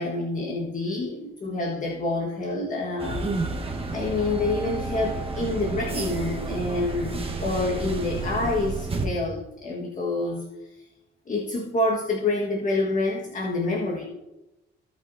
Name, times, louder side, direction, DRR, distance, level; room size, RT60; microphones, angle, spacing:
voice 1, 0.0-3.2 3.9-10.4 11.3-14.0, left 2 dB, 40° left, -1 dB, 1.6 m, -27 dB
sound 1, 3.0-9.1, right 3 dB, 30° right, 1.4 m, -31 dB
17.0 x 5.9 x 2.8 m, 0.99 s
cardioid pair, 90°, 20 cm